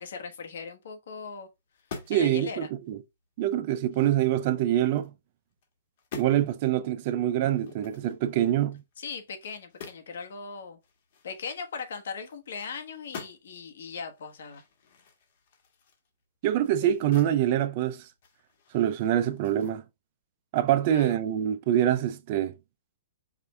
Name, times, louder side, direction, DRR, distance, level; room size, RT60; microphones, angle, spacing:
voice 1, 0.0-1.5 2.1-2.7 9.0-10.8 11.2-14.6 16.8-16.9 20.8-21.2, left 5 dB, 70° left, 1.3 m, -39 dB
sound 1, 1.7-2.3 2.8-2.9 3.4-5.1 5.5-5.7 6.0-6.4 7.5-10.1 10.4-10.5 10.8-12.6 12.9-13.6 14.1-17.4 17.7-19.7, left 5 dB, 50° left, 1.4 m, -47 dB
voice 2, 2.1-3.0 3.4-5.1 6.1-8.8 16.4-18.0 18.7-19.8 20.5-22.5, right 11 dB, 40° right, 0.5 m, -25 dB
5.0 x 2.6 x 3.3 m
hypercardioid pair, 160°, 0 cm